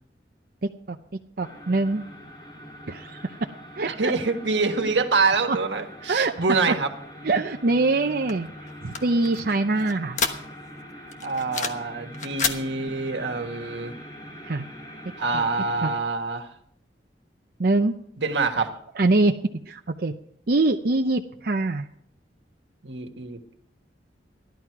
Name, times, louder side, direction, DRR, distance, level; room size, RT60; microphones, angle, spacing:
sound 1, 1.4-16.0, equal, 25° left, 2.6 m, -43 dB
voice 1, 1.4-2.0 2.9-3.2 3.8-4.1 5.5-5.6 6.1-6.4 6.7-6.8 7.2-8.5 8.8-10.2 14.4-14.6 15.3-15.4 15.8-15.9 17.6-18.0 19.0-19.4 19.7-20.1 20.5-21.9, right 2 dB, 55° right, 3 dB, 0.7 m, -23 dB
voice 2, 3.8-6.9 11.2-13.9 15.2-16.5 18.2-18.7 22.8-23.4, right 4 dB, 85° right, 6 dB, 1.5 m, -25 dB
sound 2, 8.3-10.8 11.1-11.9 12.1-12.6, left 5 dB, 45° left, 1.2 m, -29 dB
15.0 x 11.5 x 4.7 m, 0.68 s
head